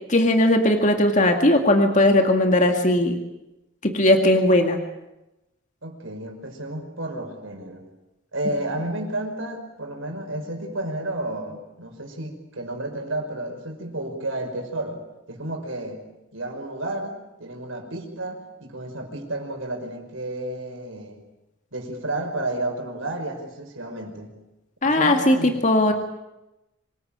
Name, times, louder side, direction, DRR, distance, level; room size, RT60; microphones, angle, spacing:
voice 1, 0.1-3.2 3.8-4.8 24.8-25.9, left 1 dB, 40° left, 5 dB, 2.1 m, -18 dB
voice 2, 5.8-7.8 8.3-15.0 15.3-16.0 16.3-21.2 21.7-24.3 24.8-25.5 25.9-26.0, right 1 dB, 85° right, 3 dB, 5.3 m, -31 dB
25.5 x 19.5 x 8.8 m, 0.95 s
head